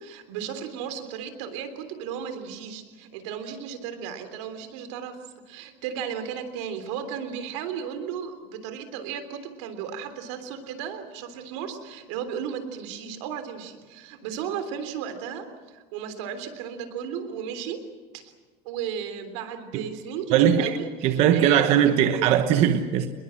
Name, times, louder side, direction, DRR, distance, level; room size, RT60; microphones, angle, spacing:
voice 1, 0.0-17.8 18.1-18.3 18.7-22.3, right 8 dB, 90° right, 3.4 m, -35 dB
voice 2, 20.3-20.8 21.0-23.1, right 9 dB, 45° right, 1.1 m, -20 dB
27.5 x 21.5 x 7.6 m
cardioid pair, 175°, 15 cm